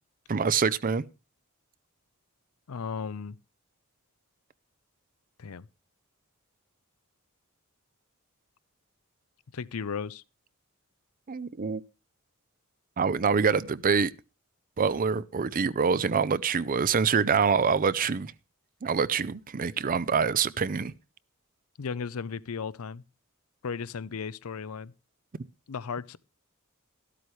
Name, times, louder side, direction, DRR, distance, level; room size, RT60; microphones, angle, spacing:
voice 1, 0.3-1.0 11.3-11.8 13.0-14.1 14.8-18.3 18.8-20.9, right 5 dB, 40° right, 0.5 m, -25 dB
voice 2, 2.7-3.4 5.4-5.7 9.5-10.2 21.8-23.0 23.6-24.9 25.7-26.2, left 5 dB, 80° left, 0.5 m, -35 dB
13.0 x 12.5 x 3.2 m
head